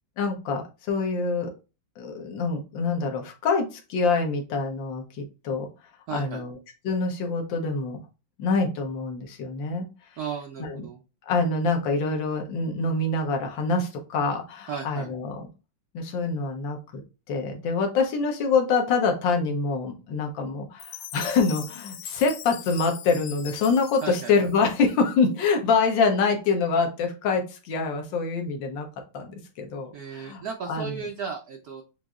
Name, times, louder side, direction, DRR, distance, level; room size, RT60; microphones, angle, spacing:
voice 1, 0.2-1.5 2.0-5.7 6.1-6.6 6.8-8.0 8.4-9.9 10.6-10.8 11.2-15.5 15.9-17.0 17.3-28.9 29.1-31.0, left 4 dB, 65° left, 3 dB, 1.7 m, -25 dB
voice 2, 6.1-6.5 10.2-11.0 14.7-15.1 24.0-24.3 29.9-31.8, right 6 dB, 70° right, 3 dB, 0.9 m, -35 dB
Chime, 20.8-25.2, left 10 dB, 85° left, 0.9 m, -41 dB
7.9 x 2.7 x 2.4 m, 0.30 s
omnidirectional pair, 2.3 m